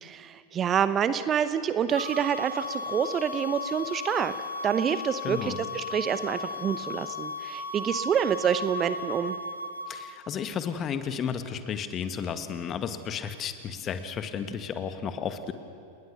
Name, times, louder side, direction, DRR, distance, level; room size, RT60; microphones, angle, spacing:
voice 1, 0.0-4.3 4.6-9.4, right 8 dB, 25° right, 13 dB, 0.9 m, -27 dB
sound 1, 1.9-10.1, left 2 dB, 85° right, 1.9 m, -35 dB
voice 2, 5.2-5.6 9.9-15.5, left 7 dB, 30° left, 9 dB, 1.7 m, -33 dB
29.5 x 19.5 x 6.9 m, 2.3 s
figure-of-eight pair, 90°, 0 cm